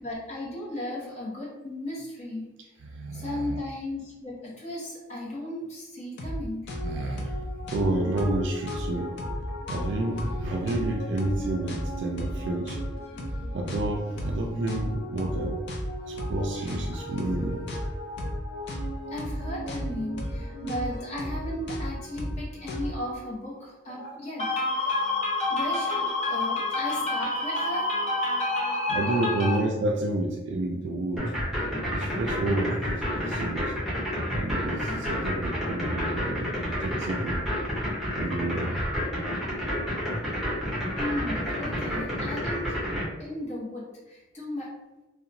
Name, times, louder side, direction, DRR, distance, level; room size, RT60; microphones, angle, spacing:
voice 1, 0.0-2.5 3.1-6.7 19.1-29.6 41.0-42.8 43.2-44.7, left 2 dB, 35° left, -5 dB, 0.9 m, -31 dB
voice 2, 2.8-3.6 6.8-9.1 9.7-12.8 13.5-15.6 16.1-17.8 19.8-20.1 28.9-31.3 31.9-33.7 34.3-37.4 38.2-38.8 41.6-42.4, right 2 dB, 65° right, 2 dB, 0.3 m, -30 dB
sound 1, 6.2-6.4 6.7-23.2, equal, 60° left, 0.5 m, -34 dB
sound 2, 31.2-43.0, equal, ahead, 0.7 m, -29 dB
2.7 x 2.1 x 2.6 m, 1.1 s
head